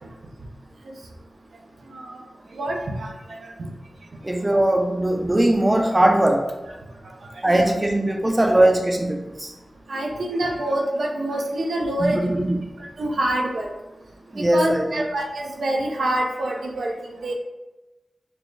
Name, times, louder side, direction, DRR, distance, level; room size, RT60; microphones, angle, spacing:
voice 1, 2.5-3.5 7.5-7.7 9.9-12.2 12.8-13.7 14.4-17.3, right 1 dB, 85° right, 0 dB, 0.5 m, -26 dB
voice 2, 4.2-6.5 7.4-9.5 12.0-12.6 14.3-15.0, right 1 dB, 25° right, 1 dB, 0.5 m, -20 dB
4.1 x 2.2 x 3.1 m, 1.1 s
cardioid pair, 50°, 0 cm